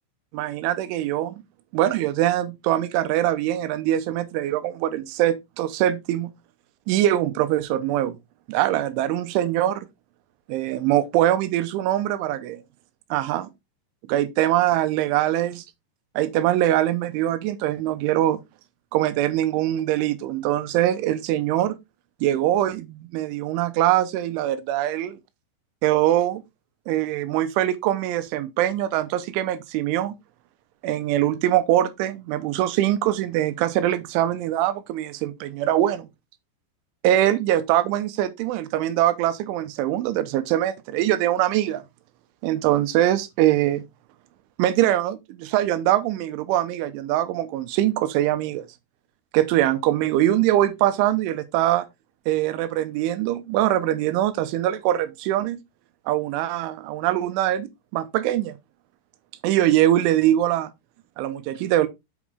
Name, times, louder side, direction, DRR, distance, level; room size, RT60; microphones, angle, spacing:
voice 1, 0.3-1.4 1.7-6.3 6.9-8.2 8.5-9.9 10.5-12.6 13.1-13.5 14.1-15.5 16.2-18.4 18.9-21.8 22.2-25.2 25.8-26.4 26.9-30.1 30.8-36.1 37.0-41.8 42.4-43.8 44.6-48.7 49.3-51.9 52.3-55.6 56.1-58.6 59.4-60.7 61.2-61.9, right 13 dB, 85° right, 3.3 m, -23 dB
8.3 x 5.1 x 3.5 m
omnidirectional pair, 5.4 m